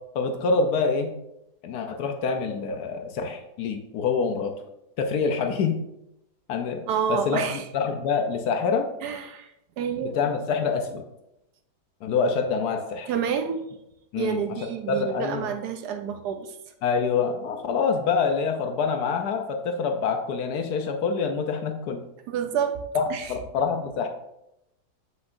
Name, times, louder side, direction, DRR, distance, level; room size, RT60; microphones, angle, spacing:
voice 1, 0.1-1.1 1.6-4.5 5.0-5.8 6.5-6.8 7.1-8.9 10.0-11.1 12.0-13.1 14.1-14.4 14.9-15.5 16.8-22.0 22.9-24.1, left 5 dB, 70° left, 5 dB, 1.1 m, -26 dB
voice 2, 6.9-7.7 9.0-9.5 9.8-10.2 13.1-13.6 14.2-16.6 22.3-22.8 23.1-23.3, right 7 dB, 70° right, 7 dB, 1.1 m, -28 dB
7.8 x 5.8 x 2.6 m, 0.85 s
omnidirectional pair, 1.9 m